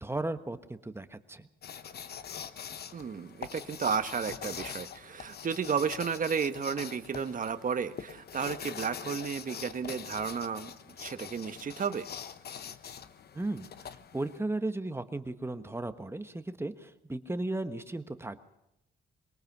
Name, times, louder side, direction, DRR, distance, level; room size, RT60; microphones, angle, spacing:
voice 1, 0.0-1.5 13.3-18.4, right 2 dB, 10° right, 10 dB, 1.4 m, -35 dB
sound 1, 1.6-14.4, left 8 dB, 55° left, 1.1 m, -44 dB
voice 2, 2.9-10.7 11.0-12.1, right 6 dB, 45° right, 10 dB, 1.4 m, -33 dB
23.5 x 18.5 x 6.1 m, 0.85 s
cardioid pair, 90°, 20 cm